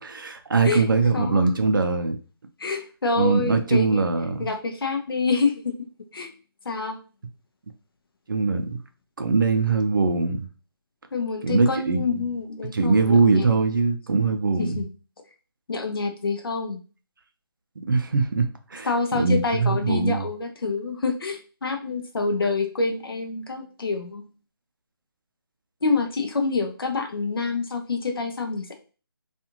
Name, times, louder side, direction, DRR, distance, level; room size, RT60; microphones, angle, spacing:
voice 1, 0.1-2.2 3.2-4.5 8.3-8.8 9.2-10.5 11.4-12.2 12.7-14.8 17.9-20.2, right 4 dB, 55° right, 0.5 m, -22 dB
voice 2, 1.1-1.5 2.6-4.1 4.4-5.9 6.1-6.3 6.7-7.0 11.1-13.5 14.6-14.9 15.7-16.8 18.8-24.3 25.8-28.7, left 4 dB, 65° left, 0.6 m, -27 dB
2.5 x 2.4 x 2.9 m
figure-of-eight pair, 170°, 13 cm